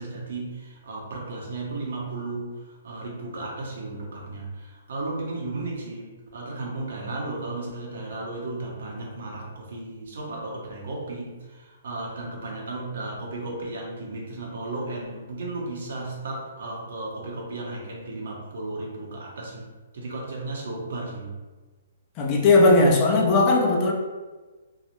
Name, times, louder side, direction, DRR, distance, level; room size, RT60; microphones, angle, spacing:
voice 1, 0.0-21.3, right 2 dB, 70° right, -2 dB, 0.8 m, -34 dB
voice 2, 22.2-23.9, left 2 dB, 30° left, 0 dB, 0.4 m, -18 dB
2.3 x 2.0 x 2.9 m, 1.3 s
hypercardioid pair, 150°, 0 cm